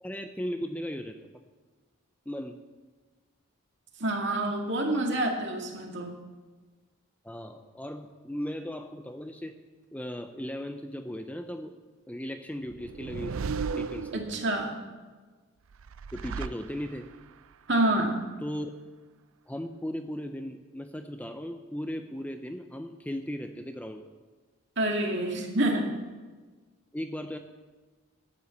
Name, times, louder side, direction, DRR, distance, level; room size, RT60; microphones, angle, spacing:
voice 1, 0.0-1.1 2.3-2.6 7.2-9.6 9.9-11.7 12.1-13.4 13.7-14.2 16.1-17.1 18.4-18.7 19.5-24.1 26.9-27.4, equal, 5° left, 6 dB, 0.6 m, -37 dB
voice 2, 4.0-6.1 14.1-14.7 17.7-18.2 24.8-25.9, right 1 dB, 55° right, 1 dB, 2.3 m, -27 dB
sound 1, 12.7-14.7 15.7-17.2, right 5 dB, 75° right, 0.4 m, -35 dB
12.5 x 8.9 x 7.2 m, 1.3 s
head